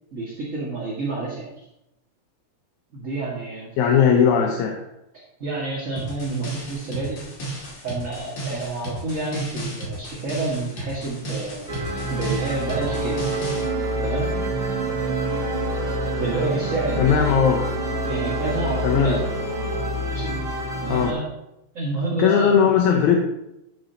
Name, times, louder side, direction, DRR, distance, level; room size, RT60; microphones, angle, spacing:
voice 1, 0.1-1.5 2.9-3.7 5.1-7.2 7.8-11.7 12.1-13.2 14.0-14.3 16.2-17.4 18.1-19.5 20.1-20.4 20.8-21.3 21.7-22.6, right 3 dB, 30° right, -6 dB, 1.9 m, -29 dB
voice 2, 3.8-4.8 17.0-17.6 18.8-19.2 20.9-21.2 22.2-23.2, left 7 dB, 80° left, 1 dB, 2.3 m, -18 dB
sound 1, 6.0-13.7, right 1 dB, 50° left, 3.2 m, -33 dB
sound 2, 11.7-21.1, equal, 65° right, 0.5 m, -27 dB
Wind instrument woodwind instrument, 12.7-20.0, right 6 dB, 80° right, 1.9 m, -32 dB
12.5 x 7.9 x 2.9 m, 0.88 s
omnidirectional pair, 3.3 m